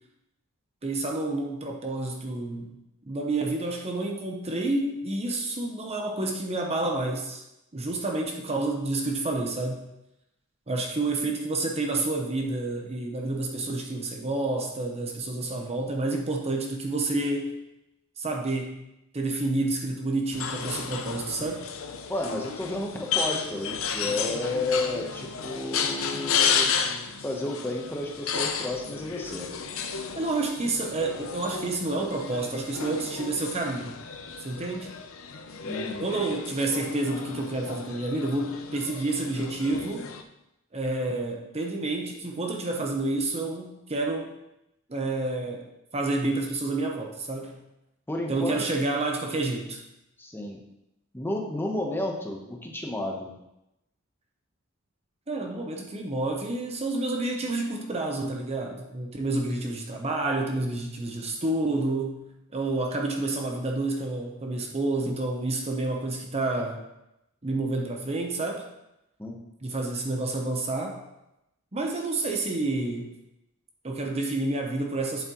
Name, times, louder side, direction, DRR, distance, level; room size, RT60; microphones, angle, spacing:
voice 1, 0.8-2.7 3.1-7.4 7.7-9.9 10.7-17.6 18.2-18.8 19.1-21.6 30.2-34.0 34.4-35.0 36.0-40.1 40.7-44.3 44.9-45.7 45.9-47.6 48.3-49.8 55.3-62.2 62.5-66.8 67.4-68.7 69.6-71.0 71.7-73.1 73.8-75.2, right 2 dB, 30° right, 2 dB, 0.8 m, -29 dB
sound 1, 20.3-40.2, left 6 dB, 70° left, 0.6 m, -32 dB
voice 2, 22.1-26.7 27.2-29.5 35.6-36.0 48.1-48.6 50.2-50.6 51.1-53.3 69.2-69.4, left 2 dB, 10° left, 0 dB, 1.0 m, -31 dB
8.4 x 7.4 x 3.0 m, 0.87 s
head